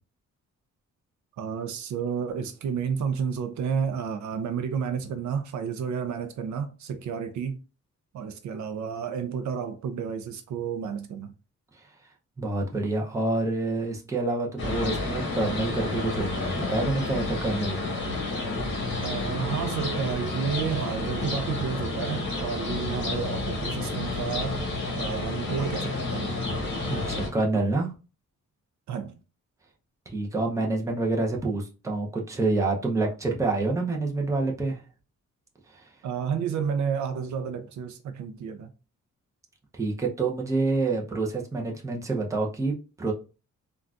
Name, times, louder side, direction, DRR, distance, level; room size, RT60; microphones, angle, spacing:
voice 1, 1.4-7.6 8.1-11.3 19.0-24.6 24.9-26.3 28.9-29.2 36.0-38.7, right 7 dB, 65° right, 0.4 m, -31 dB
voice 2, 12.4-17.8 26.9-27.9 30.1-34.8 35.7-35.8 39.7-43.1, right 3 dB, 10° right, 0.5 m, -27 dB
sound 1, 14.6-27.3, left 2 dB, 40° left, 1.1 m, -30 dB
3.7 x 2.3 x 2.3 m
wide cardioid pair, 145°, 31 cm